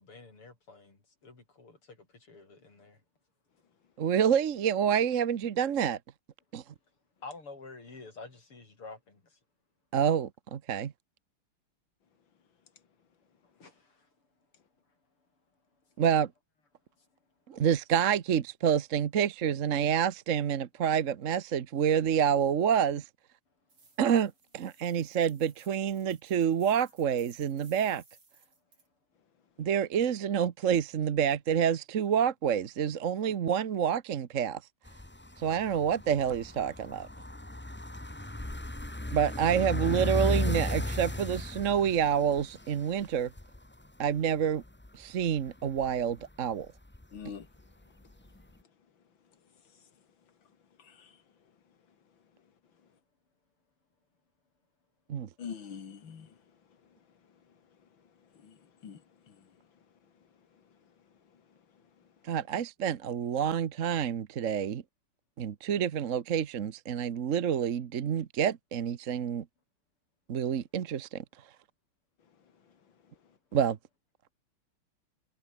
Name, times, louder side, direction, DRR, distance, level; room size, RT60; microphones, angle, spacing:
voice 1, 0.0-3.0 7.2-9.4 13.4-14.1 17.0-17.1, left 3 dB, 90° left, 6.6 m, -49 dB
voice 2, 4.0-6.0 6.5-6.6 9.9-10.9 16.0-16.3 17.5-23.0 24.0-28.0 29.6-34.6 35.4-37.1 39.1-43.3 44.0-44.6 44.9-46.7 55.1-55.3 62.3-64.8 65.4-69.4 70.3-71.2 73.5-73.8, right 8 dB, 50° right, 1.0 m, -28 dB
sound 1, 23.7-28.9, right 4 dB, 85° right, 6.6 m, -61 dB
sound 2, 34.9-43.8 44.1-44.2 44.4-46.3 46.6-47.3 47.6-47.7 48.3-48.4, left 1 dB, 10° left, 0.6 m, -35 dB
voice 3, 47.1-47.5 50.8-51.2 55.4-56.4 58.3-59.5, left 7 dB, 65° left, 2.8 m, -45 dB
omnidirectional pair, 2.4 m